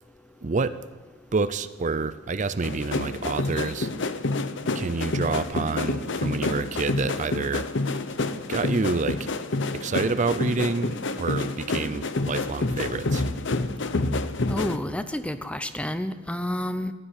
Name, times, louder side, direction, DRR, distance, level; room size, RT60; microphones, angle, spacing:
voice 1, 0.4-0.8 1.3-3.9 4.7-7.7 8.5-9.3 9.7-13.2, right 4 dB, 40° right, 13 dB, 0.5 m, -28 dB
sound 1, 2.6-14.8, left 2 dB, 65° left, 0.8 m, -28 dB
voice 2, 14.5-16.9, left 1 dB, 5° left, 11 dB, 0.7 m, -30 dB
15.5 x 11.0 x 8.1 m, 1.4 s
head